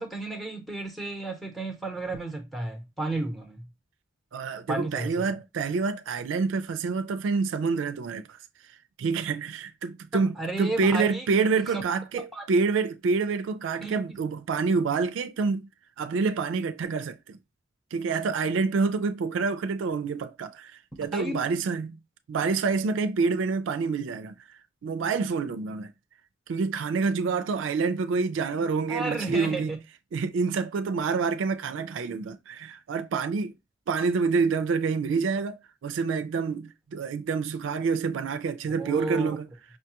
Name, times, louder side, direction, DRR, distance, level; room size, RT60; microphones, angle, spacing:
voice 1, 0.0-3.6 4.7-5.3 10.1-11.2 11.6-11.8 12.1-12.5 13.8-14.2 21.1-21.5 28.9-29.8 38.8-39.3, right 2 dB, ahead, 0.7 m, -33 dB
voice 2, 4.3-8.4 9.0-15.7 16.0-17.4 17.9-22.0 22.3-24.3 24.8-25.9 26.5-29.7 30.1-33.5 33.9-35.6 35.8-39.5, right 4 dB, 75° right, 0.3 m, -27 dB
5.3 x 2.2 x 2.8 m
head